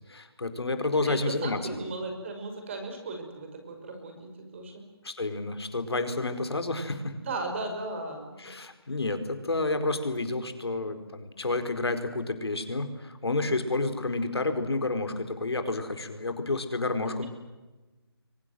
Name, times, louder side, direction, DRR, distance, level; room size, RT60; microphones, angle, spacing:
voice 1, 0.1-1.6 5.0-7.1 8.4-17.3, left 2 dB, 80° left, 8 dB, 4.7 m, -30 dB
voice 2, 1.1-4.8 7.1-8.3, right 3 dB, 30° right, 5 dB, 5.7 m, -36 dB
27.5 x 24.0 x 7.8 m, 1.1 s
figure-of-eight pair, 170°, 13 cm